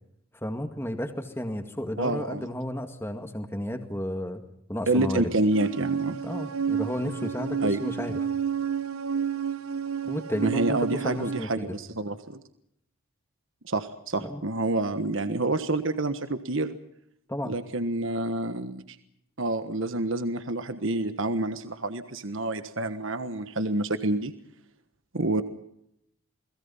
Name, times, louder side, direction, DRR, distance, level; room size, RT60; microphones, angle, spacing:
voice 1, 0.3-4.4 4.7-5.3 6.2-8.1 10.0-11.7 14.2-14.4 17.3-17.6, equal, 10° left, 6 dB, 2.0 m, -32 dB
voice 2, 2.0-2.5 4.9-6.2 7.6-7.8 10.4-12.4 13.6-16.8 17.4-19.0 19.4-24.3 25.1-25.4, right 2 dB, 65° right, 10 dB, 1.4 m, -28 dB
sound 1, 5.5-11.5, right 7 dB, 80° right, 0.9 m, -30 dB
29.5 x 21.0 x 5.6 m, 0.74 s
head